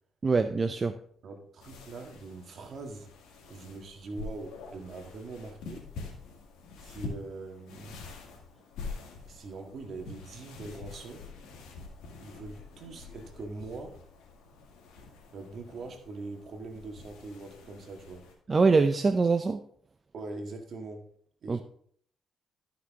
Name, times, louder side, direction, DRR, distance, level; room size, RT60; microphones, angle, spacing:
voice 1, 0.2-1.0 18.5-19.6 21.5-21.6, right 4 dB, 30° right, 8 dB, 0.5 m, -24 dB
voice 2, 1.2-3.1 3.5-5.9 6.8-8.1 9.2-11.3 12.2-14.0 15.3-18.3 20.1-21.1 21.4-21.6, right 3 dB, 55° right, 4 dB, 1.8 m, -42 dB
sound 1, 1.6-18.3, left 4 dB, 85° left, 2.0 m, -46 dB
12.5 x 5.9 x 3.6 m, 0.62 s
cardioid pair, 90°, 0 cm